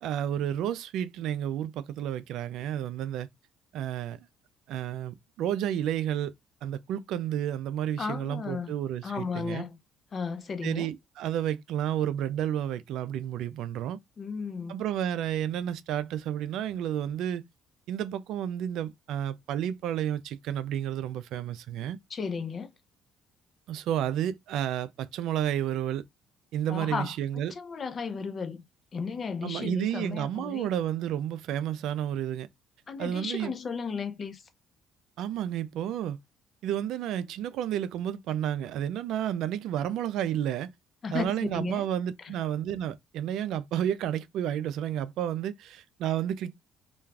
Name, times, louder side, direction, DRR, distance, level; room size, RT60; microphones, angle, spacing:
voice 1, 0.0-3.3 3.7-4.2 4.7-6.3 6.6-9.7 10.6-14.0 14.7-17.4 17.9-22.0 23.7-26.0 26.5-27.5 29.4-32.5 33.0-33.5 35.2-36.2 36.6-40.7 41.1-46.5, right 10 dB, 75° right, 0.3 m, -31 dB
voice 2, 8.0-8.7 9.0-9.8 10.1-10.9 14.2-14.8 22.1-22.7 26.7-27.1 27.5-28.6 28.9-30.7 32.9-34.4 41.0-41.9 42.2-42.3, left 5 dB, 40° left, 0.6 m, -34 dB
2.3 x 2.2 x 3.3 m
supercardioid pair, 75°, 0 cm